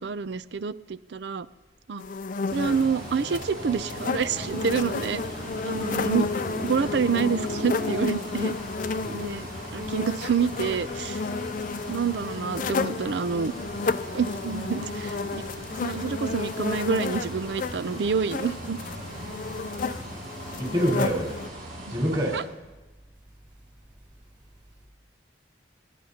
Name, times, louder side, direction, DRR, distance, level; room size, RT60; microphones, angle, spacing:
voice 1, 0.0-1.5 1.9-2.0 2.5-5.2 5.6-6.3 6.6-8.6 9.1-11.2 11.9-13.5 14.1-15.4 15.8-18.8 21.9-22.0 22.3-22.4, right 6 dB, 65° right, 15 dB, 0.5 m, -27 dB
sound 1, 2.0-21.5, left 4 dB, 45° left, 0.4 m, -32 dB
sound 2, 2.5-22.4, right 1 dB, 50° right, 6.2 m, -39 dB
voice 2, 20.6-21.3 21.9-22.4, equal, 25° right, -2 dB, 4.4 m, -26 dB
30.0 x 11.0 x 2.9 m, 1.2 s
head